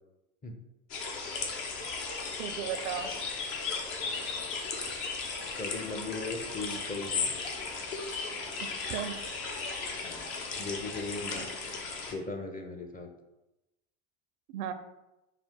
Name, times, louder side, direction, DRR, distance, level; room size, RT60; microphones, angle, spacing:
sound 1, 0.9-12.1, left 4 dB, 60° left, 1.0 m, -36 dB
voice 1, 2.4-3.1 8.6-9.2 14.5-14.7, right 9 dB, 70° right, 10 dB, 0.6 m, -35 dB
voice 2, 5.6-7.3 10.0-11.5 12.1-13.1, left 3 dB, 20° left, 4 dB, 0.5 m, -38 dB
5.0 x 2.4 x 3.6 m, 0.96 s
hypercardioid pair, 75°, 45 cm